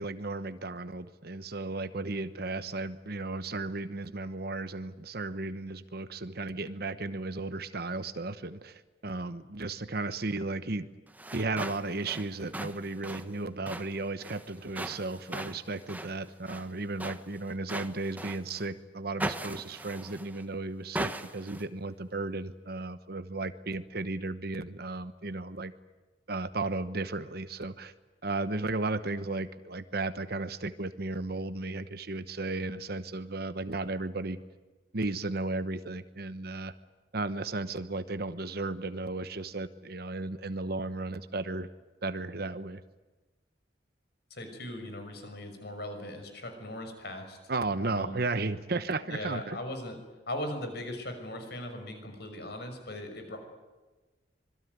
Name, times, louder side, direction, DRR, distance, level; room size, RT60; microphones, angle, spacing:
voice 1, 0.0-10.9 11.3-25.7 26.3-27.9 28.2-34.4 34.9-36.7 37.1-41.7 42.0-42.8 47.5-49.6, right 2 dB, 55° right, 11 dB, 1.0 m, -34 dB
sound 1, 11.1-18.7 19.2-20.5 20.9-21.7, right 1 dB, 10° right, 1.2 m, -40 dB
voice 2, 44.3-47.4 47.9-48.2 49.0-50.0 50.3-53.4, left 1 dB, 60° left, 6 dB, 6.1 m, -39 dB
26.0 x 22.0 x 9.5 m, 1.2 s
head